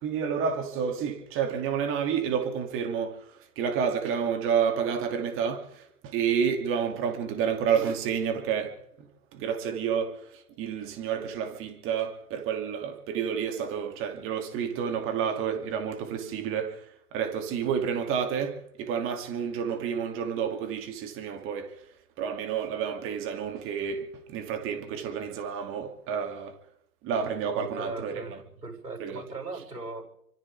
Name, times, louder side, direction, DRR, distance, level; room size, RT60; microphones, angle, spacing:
voice 1, 0.0-3.3 3.6-8.8 9.3-16.9 17.1-21.7 22.2-26.6 27.0-28.4 29.0-29.2, right 7 dB, 25° right, 2.8 m, -30 dB
voice 2, 27.5-30.1, right 3 dB, 80° right, 7.7 m, -39 dB
29.0 x 25.0 x 3.6 m
figure-of-eight pair, 115°, 47 cm